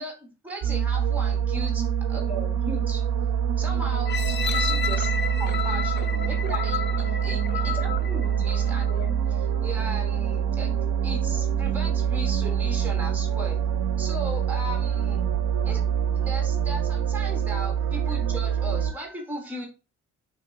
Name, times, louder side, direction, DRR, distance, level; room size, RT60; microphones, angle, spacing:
voice 1, 0.0-3.0 3.6-10.8 11.0-13.6 14.0-15.3 15.6-15.8 16.1-19.7, right 1 dB, 5° right, 1 dB, 1.4 m, -37 dB
sound 1, 0.6-18.9, right 8 dB, 60° right, 0.6 m, -25 dB
sound 2, 4.0-9.0 9.6-9.7, left 7 dB, 35° left, 0.5 m, -31 dB
5.7 x 3.0 x 2.8 m, 0.32 s
cardioid pair, 90°, 30 cm